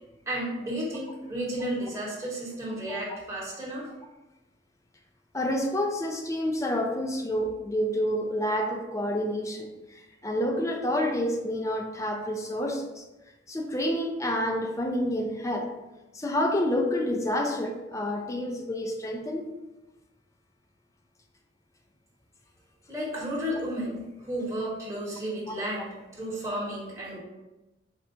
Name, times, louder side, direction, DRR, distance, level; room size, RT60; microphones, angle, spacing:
voice 1, 0.3-3.9 22.9-27.2, right 1 dB, 15° right, -6 dB, 1.2 m, -33 dB
voice 2, 5.3-13.0 13.5-15.7 16.1-19.5 25.5-25.6, left 1 dB, 15° left, 3 dB, 0.4 m, -29 dB
4.2 x 2.6 x 4.4 m, 1.0 s
head